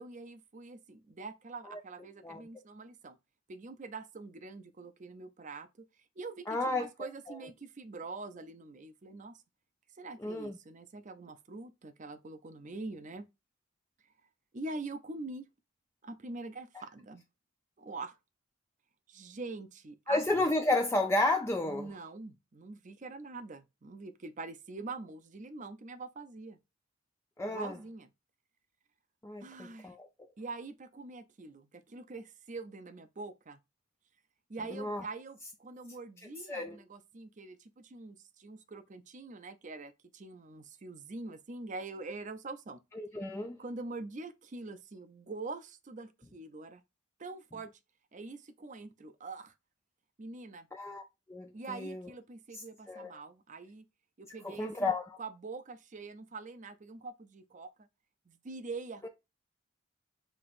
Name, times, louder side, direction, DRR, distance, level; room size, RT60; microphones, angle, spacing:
voice 1, 0.0-3.2 3.5-5.7 6.2-9.4 10.0-13.2 14.5-15.5 16.0-17.2 17.8-18.2 19.1-20.2 21.7-26.6 27.5-28.1 29.4-30.0 30.4-33.6 34.5-42.8 43.6-46.8 47.2-47.7 48.1-49.5 50.2-50.7 51.5-53.8 54.2-54.9 55.2-57.9 58.3-59.1, right 3 dB, 40° right, 0.5 m, -44 dB
voice 2, 6.5-6.9 7.3-7.4 10.2-10.6 20.1-21.9 27.4-27.8 29.2-30.1 34.7-35.0 36.5-36.8 42.9-43.6 50.7-51.0 51.3-52.0 52.5-53.1 54.4-55.2 59.0-59.1, left 2 dB, 15° left, 0.4 m, -32 dB
5.9 x 2.9 x 2.5 m
head